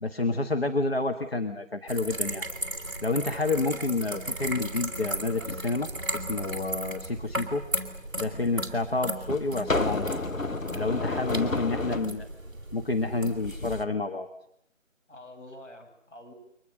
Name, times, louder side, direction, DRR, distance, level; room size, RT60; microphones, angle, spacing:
voice 1, 0.0-2.4 3.0-7.6 8.2-10.1 10.7-12.3 12.7-14.3, left 3 dB, 50° left, 5 dB, 1.5 m, -29 dB
sound 1, 1.9-13.8, right 1 dB, 15° right, 2.2 m, -36 dB
sound 2, 8.2-8.3 9.3-12.1 13.4-13.8, left 3 dB, 85° left, 1.4 m, -31 dB
voice 2, 10.9-11.7 15.1-16.3, left 1 dB, 65° left, 3 dB, 7.2 m, -46 dB
29.0 x 23.5 x 6.7 m, 0.74 s
figure-of-eight pair, 165°, 39 cm